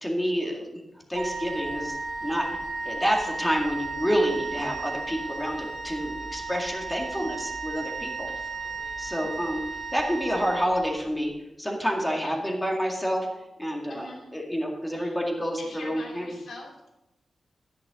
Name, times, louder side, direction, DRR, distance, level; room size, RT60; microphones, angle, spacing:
voice 1, 0.0-2.6 2.8-8.3 9.0-9.6 9.9-13.3 13.6-16.3, equal, 5° left, 0 dB, 2.1 m, -28 dB
Wind instrument woodwind instrument, 1.1-11.2, right 4 dB, 75° right, 1.6 m, -35 dB
voice 2, 8.3-9.1 9.4-9.8 12.2-12.3 13.9-14.3 14.9-15.2 15.6-16.9, left 2 dB, 65° left, -1 dB, 2.9 m, -45 dB
12.5 x 9.9 x 3.7 m, 0.93 s
wide cardioid pair, 160°, 0 cm